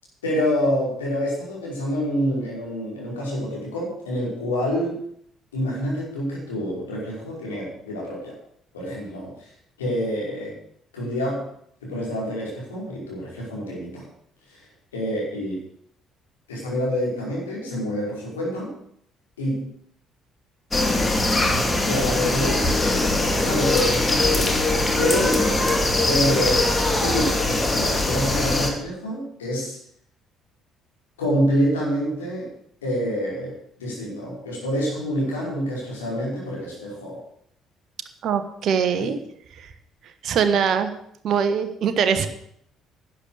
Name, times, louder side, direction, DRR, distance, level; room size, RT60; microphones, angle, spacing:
voice 1, 0.2-5.0 5.5-8.3 8.7-9.3 9.8-10.5 10.9-11.5 11.8-14.0 14.5-14.6 14.9-15.6 16.5-18.8 19.4-19.7 21.9-22.7 23.4-24.6 25.0-25.4 26.1-26.7 27.0-29.8 31.2-32.5 32.8-33.5 33.8-37.2 39.0-39.1, equal, 75° left, -5 dB, 5.2 m, -27 dB
sound 1, 20.7-28.7, left 2 dB, 20° left, 2.4 m, -21 dB
voice 2, 38.2-39.2 39.6-39.7 40.2-40.9 41.2-42.3, right 7 dB, 50° right, 9 dB, 1.2 m, -22 dB
11.5 x 9.3 x 6.8 m, 0.68 s
figure-of-eight pair, 50°, 0 cm